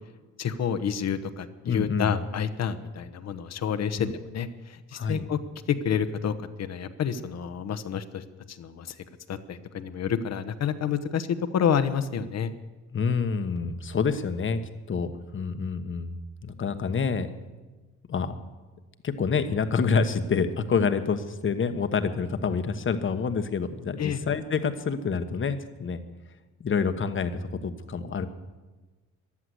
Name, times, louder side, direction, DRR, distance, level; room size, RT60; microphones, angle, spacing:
voice 1, 0.4-5.4 5.7-8.9 9.3-12.5 24.0-24.2, left 7 dB, 60° left, 11 dB, 1.1 m, -29 dB
voice 2, 1.7-2.2 4.0-4.1 4.9-5.2 12.9-14.6 14.9-17.3 18.1-18.4 19.0-26.0 26.6-27.3 27.6-28.3, left 5 dB, 40° left, 9 dB, 1.2 m, -27 dB
14.5 x 11.0 x 7.8 m, 1.2 s
cardioid pair, 90°, 30 cm